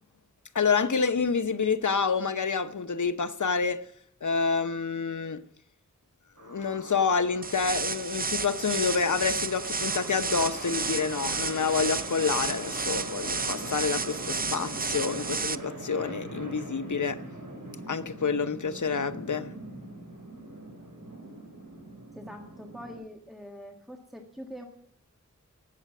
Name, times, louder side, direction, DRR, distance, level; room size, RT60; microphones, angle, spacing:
voice 1, 0.5-3.9 4.2-5.4 6.4-17.2 17.9-19.5, left 5 dB, 75° left, 0.9 m, -28 dB
sound 1, 6.4-22.9, right 1 dB, 70° right, 5.5 m, -42 dB
sound 2, 7.4-15.6, right 4 dB, 30° right, 0.5 m, -32 dB
voice 2, 22.1-24.6, equal, ahead, 1.7 m, -44 dB
18.0 x 7.6 x 8.2 m
wide cardioid pair, 65°, 30 cm